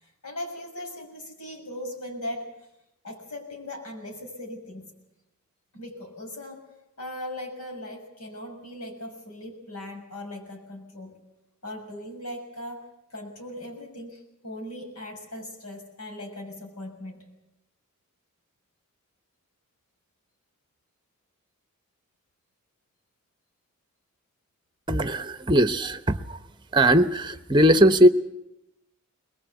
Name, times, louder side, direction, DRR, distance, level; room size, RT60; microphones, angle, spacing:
voice 1, 0.0-2.5 3.0-5.0 5.7-6.6 7.0-11.3 11.6-17.4, left 1 dB, 85° left, 3 dB, 6.5 m, -39 dB
voice 2, 24.9-26.4 26.7-28.1, equal, 20° right, 10 dB, 0.9 m, -19 dB
22.0 x 21.0 x 8.2 m, 0.91 s
head